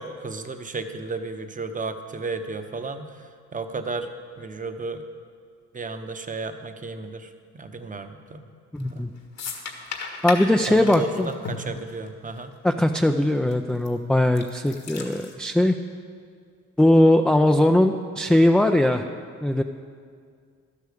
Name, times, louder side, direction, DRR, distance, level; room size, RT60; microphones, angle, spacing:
voice 1, 0.0-3.1 3.5-4.1 4.4-5.0 5.7-8.5 8.9-9.0 10.7-12.5, right 3 dB, 25° right, 8 dB, 0.9 m, -33 dB
voice 2, 8.7-9.1 10.2-11.3 12.6-15.7 16.8-19.0 19.4-19.6, left 1 dB, 5° left, 4 dB, 0.4 m, -20 dB
sound 1, 8.8-9.0 9.4-12.4 12.7-12.8 13.5-13.9 14.2-15.3, left 5 dB, 60° left, 1.7 m, -35 dB
12.0 x 8.3 x 6.7 m, 2.1 s
cardioid pair, 90°, 30 cm